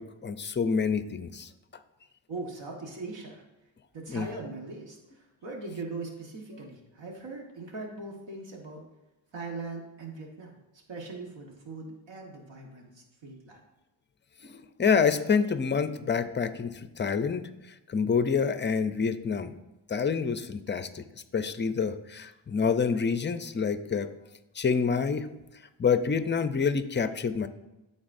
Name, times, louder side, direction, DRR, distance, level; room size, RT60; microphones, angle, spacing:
voice 1, 0.0-1.5 4.1-4.3 14.4-17.4 17.9-19.5 19.9-21.0 21.3-24.1 24.6-25.3 25.8-27.5, left 6 dB, 25° left, 11 dB, 0.5 m, -27 dB
voice 2, 2.3-3.4 3.9-8.8 9.3-10.6 10.9-13.6, right 3 dB, 60° right, 1 dB, 1.5 m, -40 dB
12.5 x 4.1 x 2.6 m, 1.0 s
cardioid pair, 70°, 49 cm